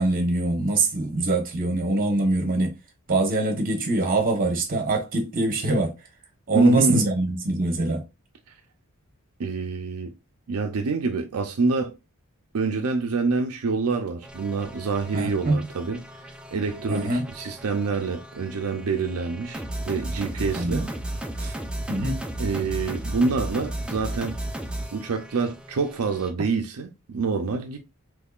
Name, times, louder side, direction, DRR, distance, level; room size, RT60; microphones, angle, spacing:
voice 1, 0.0-2.7 3.1-5.9 6.5-8.0 15.1-15.7 16.9-17.2 20.6-20.9 21.9-22.2, right 2 dB, 40° right, 1.0 m, -23 dB
voice 2, 6.5-7.1 9.4-10.1 10.5-12.0 12.5-20.9 21.4-21.6 22.4-24.4 24.9-27.8, right 4 dB, 80° right, 0.5 m, -26 dB
sound 1, 14.2-26.3, right 1 dB, 5° right, 0.5 m, -35 dB
3.6 x 3.1 x 2.3 m
head